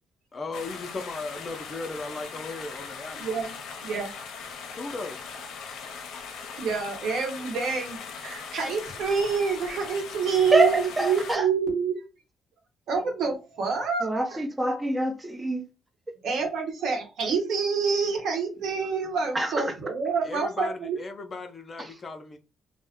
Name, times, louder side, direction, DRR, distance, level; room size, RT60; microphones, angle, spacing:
voice 1, 0.3-3.2 4.8-5.2 20.2-22.4, left 3 dB, 35° left, 0.5 m, -36 dB
sound 1, 0.5-11.4, left 5 dB, 85° left, 0.5 m, -40 dB
voice 2, 3.2-3.5 3.8-4.1 6.6-12.0 12.9-14.4 16.2-21.0, right 5 dB, 75° right, 1.0 m, -27 dB
voice 3, 10.5-11.5 14.0-15.6 19.3-19.7 21.8-21.9, right 2 dB, 20° right, 0.7 m, -25 dB
2.5 x 2.1 x 3.5 m
cardioid pair, 90°, 0 cm